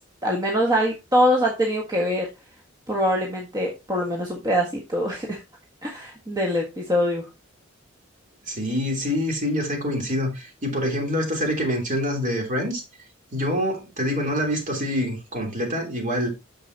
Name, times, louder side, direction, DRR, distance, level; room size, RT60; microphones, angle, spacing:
voice 1, 0.2-2.3 2.9-5.4 5.8-7.3, equal, 20° right, 1.5 m, -23 dB
voice 2, 8.5-12.8 13.3-16.3, equal, 40° right, 3.2 m, -26 dB
9.6 x 6.6 x 2.8 m
head